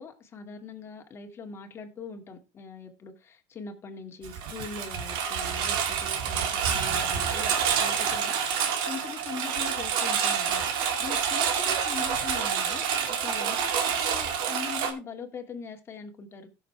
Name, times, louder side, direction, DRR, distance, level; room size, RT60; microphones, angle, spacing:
voice 1, 0.0-7.5 7.8-8.4 8.8-16.5, left 5 dB, 30° left, 2.1 m, -41 dB
Engine, 4.2-14.9, right 7 dB, 65° right, 2.3 m, -28 dB
16.5 x 6.7 x 3.3 m
cardioid pair, 135°, 9 cm